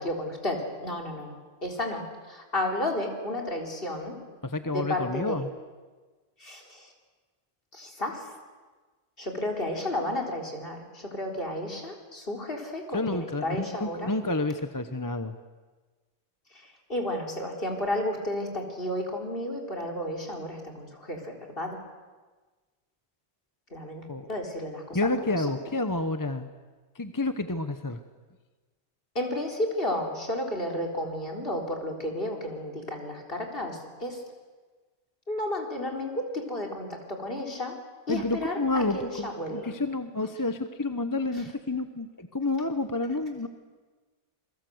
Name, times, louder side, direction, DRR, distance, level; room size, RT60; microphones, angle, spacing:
voice 1, 0.0-1.4 1.6-4.2 4.6-5.4 6.4-6.9 7.7-8.3 9.2-14.1 16.9-21.8 23.7-25.6 29.1-34.2 35.3-37.8 38.1-39.7, left 1 dB, 55° left, 1 dB, 4.2 m, -32 dB
voice 2, 4.4-5.5 12.9-15.3 24.1-24.3 24.9-26.5 27.0-28.0 38.1-43.5, left 2 dB, 20° left, 9 dB, 1.0 m, -29 dB
27.5 x 22.5 x 8.0 m, 1.3 s
omnidirectional pair, 1.2 m